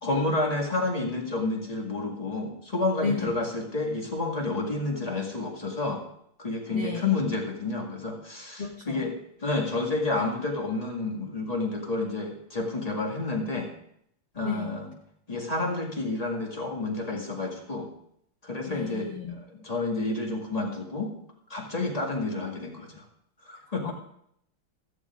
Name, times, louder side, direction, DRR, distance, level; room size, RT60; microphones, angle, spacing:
voice 1, 0.0-6.0 6.4-13.7 14.3-14.9 15.3-17.9 18.4-21.1 21.5-23.0 23.4-23.9, left 2 dB, 20° left, 0 dB, 1.8 m, -30 dB
voice 2, 3.0-3.3 6.7-7.1 8.6-9.0 14.4-14.7 18.7-19.4 23.8-23.9, left 5 dB, 40° left, -1 dB, 0.9 m, -33 dB
17.0 x 14.0 x 2.5 m, 0.71 s
omnidirectional pair, 2.3 m